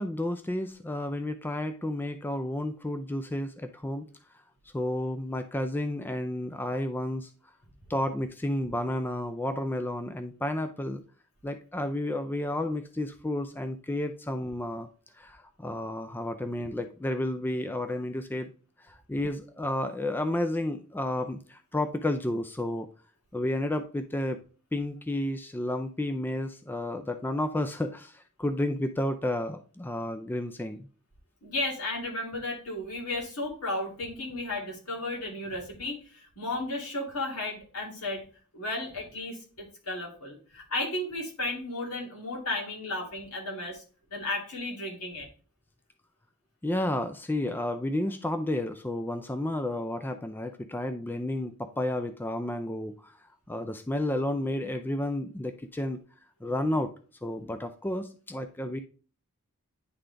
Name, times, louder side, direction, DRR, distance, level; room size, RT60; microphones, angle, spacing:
voice 1, 0.0-4.1 4.7-7.3 7.9-11.0 11.4-14.9 15.2-18.5 18.8-22.9 23.3-24.4 24.7-30.9 46.6-53.1 53.5-56.0 56.4-56.9 57.2-58.8, left 1 dB, 10° left, 8 dB, 0.3 m, -31 dB
voice 2, 31.4-38.2 38.5-43.8 44.1-45.3, left 2 dB, 75° left, -1 dB, 2.5 m, -34 dB
9.8 x 3.8 x 3.3 m, 0.39 s
head